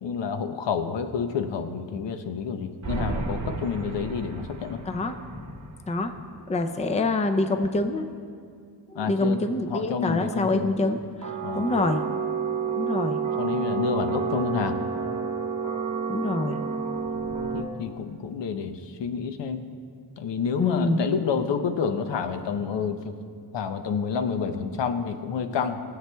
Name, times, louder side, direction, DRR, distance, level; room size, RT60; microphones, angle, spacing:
voice 1, 0.0-4.8 8.9-9.4 9.7-10.7 11.4-11.7 13.4-14.8 17.4-19.6 20.2-23.1 23.5-25.8, left 6 dB, 90° left, 8 dB, 0.7 m, -29 dB
sound 1, 2.8-5.7 11.2-17.6, right 5 dB, 45° right, 0.9 m, -30 dB
voice 2, 4.9-5.6 5.9-6.2 6.5-8.0 8.9-12.0 12.8-13.2 16.1-16.6 20.6-21.0, left 2 dB, 15° left, 8 dB, 0.4 m, -26 dB
17.5 x 7.6 x 2.2 m, 2.2 s
wide cardioid pair, 115°, 42 cm